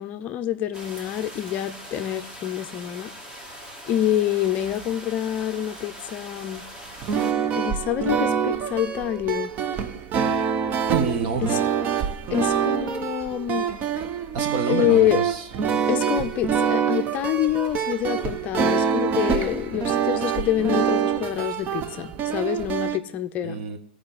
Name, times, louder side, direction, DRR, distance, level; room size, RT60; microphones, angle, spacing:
voice 1, 0.0-3.1 3.9-6.6 7.6-9.5 11.4-11.6 12.3-13.6 14.7-15.2 15.9-23.6, left 11 dB, 30° left, 0.6 m, -26 dB
sound 1, 0.7-7.3, equal, 15° right, 1.7 m, -41 dB
sound 2, 7.0-23.0, right 7 dB, 30° right, 0.7 m, -25 dB
voice 2, 10.9-11.6 14.3-15.9 23.4-23.8, right 5 dB, 50° right, 1.5 m, -28 dB
14.0 x 4.9 x 7.8 m
hypercardioid pair, 130°, 5 cm